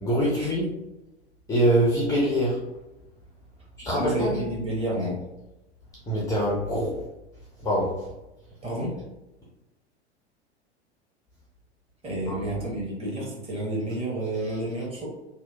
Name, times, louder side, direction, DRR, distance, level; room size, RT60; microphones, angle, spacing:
voice 1, 0.0-0.7 1.5-2.6 3.8-4.4 6.1-7.0 7.6-8.0 12.3-12.4, equal, 10° left, -5 dB, 0.4 m, -24 dB
voice 2, 3.9-5.2 8.6-8.9 12.0-15.1, right 1 dB, 15° right, -4 dB, 0.8 m, -30 dB
2.8 x 2.2 x 2.2 m, 0.96 s
figure-of-eight pair, 90°, 34 cm